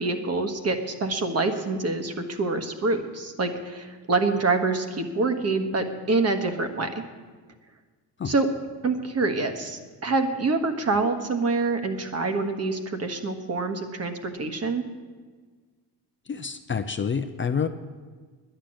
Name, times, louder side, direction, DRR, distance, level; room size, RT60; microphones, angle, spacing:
voice 1, 0.0-7.0 8.2-8.5 8.8-14.8, right 3 dB, 35° right, 7 dB, 1.4 m, -26 dB
voice 2, 16.3-17.7, left 6 dB, 30° left, 8 dB, 0.6 m, -28 dB
10.0 x 10.0 x 7.6 m, 1.5 s
cardioid pair, 110°, 42 cm